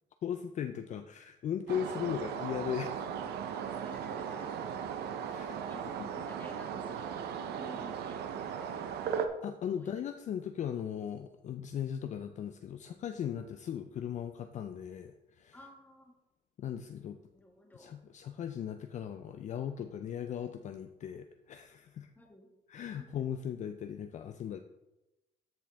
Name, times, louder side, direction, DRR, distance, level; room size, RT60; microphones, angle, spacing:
voice 1, 0.2-2.9 5.2-5.6 6.0-6.1 9.4-15.6 16.6-17.2 17.7-22.1 22.7-24.6, left 9 dB, 45° left, 8 dB, 0.5 m, -38 dB
sound 1, 1.7-9.3, right 7 dB, 75° right, 0.7 m, -37 dB
voice 2, 3.8-4.6 5.4-9.3 9.6-9.9 15.5-16.2 17.3-17.9 22.2-22.5 23.0-23.1, left 1 dB, 10° left, 0 dB, 1.9 m, -55 dB
13.5 x 4.7 x 3.5 m, 1.0 s
cardioid pair, 110°, 17 cm